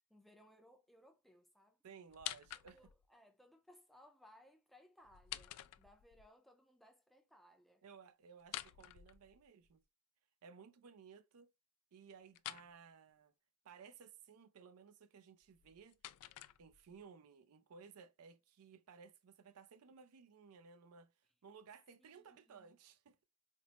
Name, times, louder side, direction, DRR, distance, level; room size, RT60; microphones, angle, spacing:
voice 1, 0.1-1.8 2.7-7.8 22.0-22.8, left 1 dB, ahead, 0.4 m, -65 dB
voice 2, 1.8-2.8 7.8-9.8 10.4-11.5 11.9-13.3 13.6-16.0 16.6-23.2, right 6 dB, 80° right, 0.4 m, -59 dB
sound 1, 2.1-3.1 5.0-6.3 8.4-9.7 12.3-12.7 15.4-17.0, left 14 dB, 90° left, 0.3 m, -49 dB
4.3 x 2.0 x 2.7 m
head